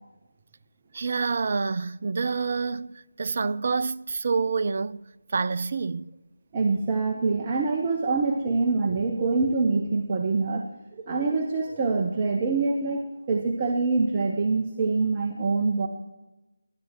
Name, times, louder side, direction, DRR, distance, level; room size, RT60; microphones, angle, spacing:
voice 1, 0.9-5.0 5.3-6.1, right 4 dB, 40° right, 0.4 m, -27 dB
voice 2, 6.5-15.9, right 3 dB, 20° right, 0.8 m, -25 dB
18.0 x 11.0 x 3.0 m
figure-of-eight pair, 160°, 0 cm